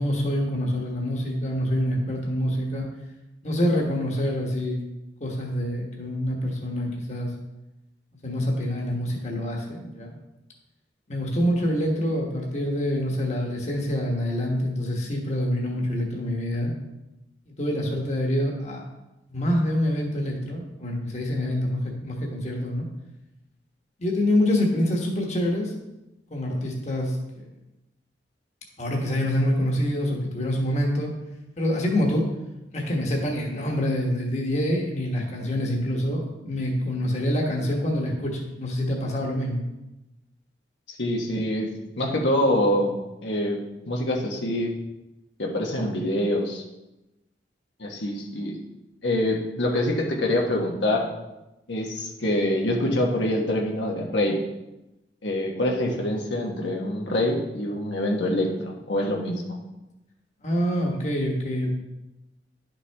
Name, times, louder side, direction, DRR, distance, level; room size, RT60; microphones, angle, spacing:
voice 1, 0.0-2.9 3.4-4.8 5.2-7.3 8.2-10.2 11.1-16.7 17.5-18.8 19.3-22.9 24.0-25.7 26.3-27.5 28.8-31.1 31.6-32.3 32.7-39.6 60.4-61.7, equal, 40° left, -1 dB, 1.3 m, -26 dB
voice 2, 40.9-41.7 42.0-42.9 43.2-43.6 43.9-44.7 45.4-46.6 47.8-48.5 49.0-51.1 51.7-54.4 55.2-59.6, left 1 dB, 90° left, 0 dB, 1.4 m, -25 dB
11.0 x 5.9 x 3.5 m, 0.96 s
head